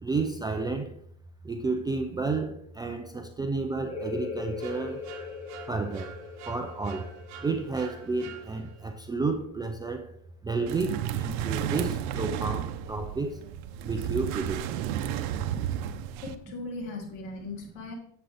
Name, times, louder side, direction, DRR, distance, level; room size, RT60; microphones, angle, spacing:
voice 1, 0.0-1.0 1.4-5.0 5.7-6.1 6.5-7.1 7.4-10.1 10.4-13.4 13.8-14.8, right 3 dB, 10° right, 5 dB, 0.4 m, -31 dB
sound 1, 3.9-9.3, left 5 dB, 15° left, 1.9 m, -40 dB
sound 2, 4.6-8.9, right 8 dB, 40° right, 1.9 m, -48 dB
sound 3, 10.7-16.4, right 11 dB, 60° right, 0.9 m, -32 dB
voice 2, 16.2-17.9, left 3 dB, 70° left, 0 dB, 3.4 m, -38 dB
9.9 x 7.6 x 3.4 m, 0.67 s
supercardioid pair, 135°, 42 cm